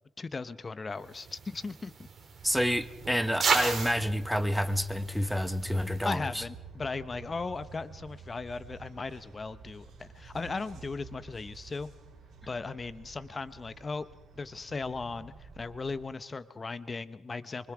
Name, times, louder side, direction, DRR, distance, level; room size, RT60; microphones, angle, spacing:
voice 1, 0.2-2.1 6.0-11.9 12.4-14.0 14.4-17.7, left 4 dB, 30° left, 0.9 m, -37 dB
sound 1, 1.1-6.2, right 5 dB, 45° right, 3.9 m, -35 dB
voice 2, 2.4-6.4, equal, ahead, 1.2 m, -29 dB
sound 2, 2.4-16.0, right 5 dB, 65° right, 6.5 m, -50 dB
24.5 x 24.0 x 4.9 m
cardioid pair, 90°, 0 cm